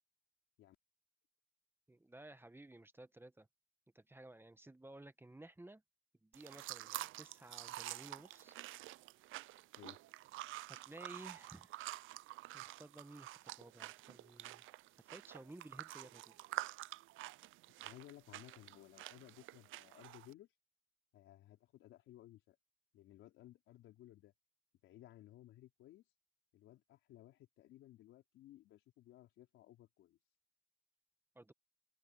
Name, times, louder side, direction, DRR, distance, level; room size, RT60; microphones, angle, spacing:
voice 1, 1.9-3.5 3.9-5.8 6.2-8.5 10.7-11.8 12.5-14.6 15.0-16.4 31.3-31.5, right 1 dB, 10° right, 1.3 m, -56 dB
sound 1, 6.3-20.3, right 17 dB, 85° right, 0.5 m, -48 dB
voice 2, 17.8-20.5 21.1-22.6 22.9-24.3 24.8-26.0 26.5-30.2, left 14 dB, 90° left, 4.9 m, -59 dB
cardioid pair, 90°, 20 cm